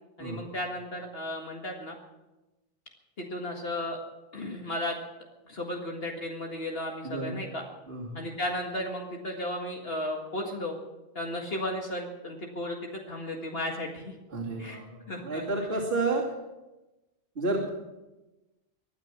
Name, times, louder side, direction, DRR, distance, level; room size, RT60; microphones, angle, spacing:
voice 1, 0.2-2.0 3.2-4.0 4.3-5.0 5.5-7.6 8.2-10.8 11.2-12.8 13.1-14.1 14.6-14.8 15.1-15.4, left 1 dB, 65° left, 0 dB, 2.1 m, -34 dB
voice 2, 7.0-7.4 7.9-8.2 14.3-16.3 17.4-17.7, right 2 dB, 70° right, -4 dB, 3.1 m, -31 dB
24.5 x 9.7 x 6.1 m, 1.0 s
omnidirectional pair, 1.1 m